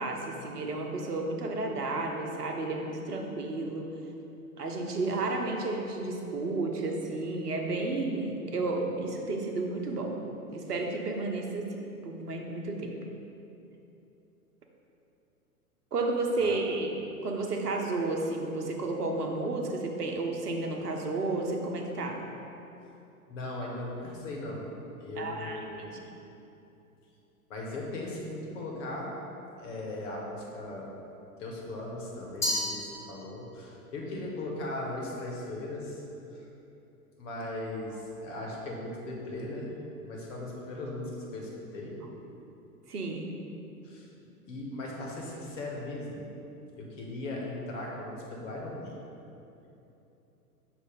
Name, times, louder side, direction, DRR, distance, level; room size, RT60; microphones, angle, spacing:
voice 1, 0.0-3.9 4.6-10.2 10.5-13.0 15.9-16.9 17.2-22.2 25.2-25.9 42.9-43.3, right 2 dB, 80° right, 2 dB, 0.9 m, -32 dB
voice 2, 23.3-24.7 25.0-26.0 27.5-29.2 29.6-30.9 31.4-36.0 36.3-36.4 37.2-39.7 40.0-42.0 43.8-44.1 44.5-46.2 46.7-49.0, left 2 dB, 55° left, -2 dB, 1.4 m, -38 dB
Glass, 32.4-33.6, left 1 dB, 5° left, 0.4 m, -32 dB
6.3 x 2.8 x 5.3 m, 2.9 s
figure-of-eight pair, 100°, 46 cm